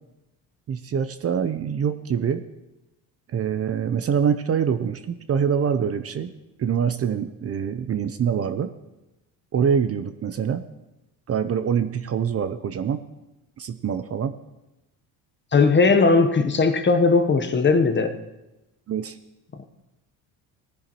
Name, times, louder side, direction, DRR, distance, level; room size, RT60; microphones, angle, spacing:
voice 1, 0.7-2.4 3.3-6.3 6.6-8.7 9.5-10.6 11.3-13.0 13.6-14.3 18.9-19.2, right 7 dB, 35° right, 10 dB, 0.7 m, -25 dB
voice 2, 15.5-18.2 19.6-19.7, left 4 dB, 30° left, 8 dB, 1.0 m, -18 dB
18.0 x 10.5 x 3.0 m, 0.97 s
supercardioid pair, 90°, 40 cm